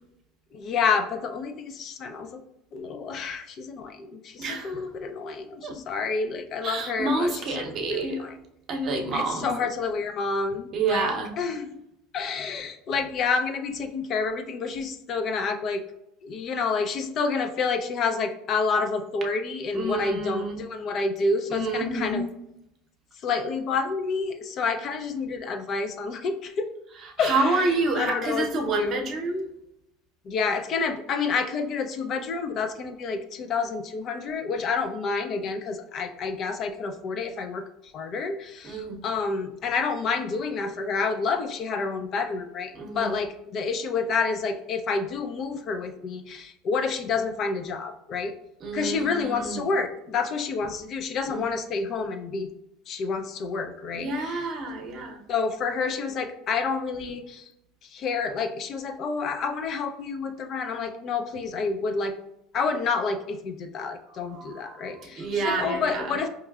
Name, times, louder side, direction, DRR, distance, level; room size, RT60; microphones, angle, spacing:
voice 1, 0.5-2.4 2.7-7.4 7.9-8.3 9.1-11.8 12.1-15.8 16.2-22.2 23.2-26.7 27.2-29.0 30.3-37.6 37.9-48.3 48.7-52.5 52.9-54.4 55.3-57.5 57.9-62.2 62.5-66.3, left 4 dB, 50° left, 7 dB, 0.5 m, -29 dB
voice 2, 4.4-4.8 5.6-5.8 6.6-8.2 8.7-9.5 10.7-11.3 19.7-20.6 21.5-22.2 27.0-29.5 38.6-39.0 42.7-43.2 48.6-49.6 51.3-51.6 53.9-55.2 64.3-64.6 65.0-66.2, right 3 dB, 45° right, 3 dB, 0.8 m, -28 dB
4.5 x 2.9 x 2.3 m, 0.83 s
supercardioid pair, 100°, 0 cm